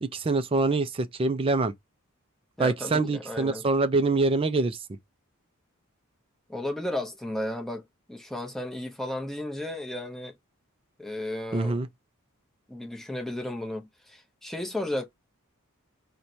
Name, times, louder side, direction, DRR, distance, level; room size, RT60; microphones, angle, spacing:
voice 1, 0.0-1.7 2.6-4.8 11.5-11.9, right 3 dB, 25° right, 0.4 m, -25 dB
voice 2, 2.6-3.6 6.5-7.8 8.1-10.3 11.0-11.8 12.7-15.0, left 1 dB, ahead, 0.7 m, -34 dB
4.4 x 2.2 x 2.7 m
head